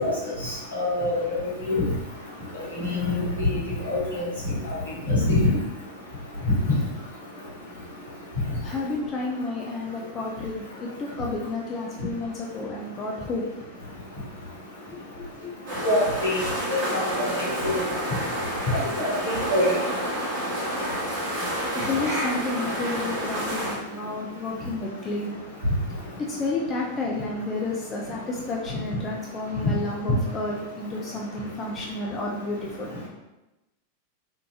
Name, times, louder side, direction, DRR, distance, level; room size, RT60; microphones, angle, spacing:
voice 1, 0.4-1.1 1.7-1.8 2.7-3.2 3.5-4.3 4.6-4.7 5.1-5.6 15.8-16.4 16.7-17.0 18.7-19.7, left 2 dB, 75° left, -7 dB, 1.3 m, -24 dB
voice 2, 8.6-13.4 14.9-15.5 21.7-25.3 26.2-33.0, left 2 dB, 25° left, -1 dB, 0.4 m, -31 dB
sound 1, 15.7-23.8, equal, 50° right, 1.5 m, -29 dB
3.6 x 2.6 x 2.7 m, 0.98 s
figure-of-eight pair, 90°, 0 cm